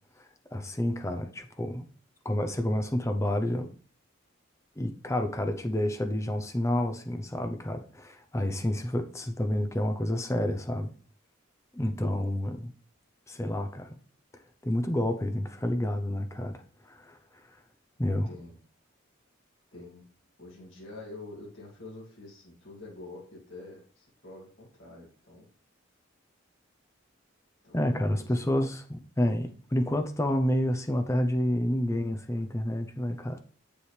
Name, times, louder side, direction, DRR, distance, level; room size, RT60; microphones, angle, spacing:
voice 1, 0.2-1.8 2.2-3.7 4.8-10.9 11.7-12.7 13.3-13.9 14.6-17.2 18.0-18.3 27.7-33.4, left 1 dB, 15° left, 0.6 m, -29 dB
voice 2, 18.3-18.6 19.7-20.0 20.4-25.5 27.6-28.5, left 2 dB, 65° left, 2.6 m, -47 dB
7.7 x 7.0 x 3.3 m
head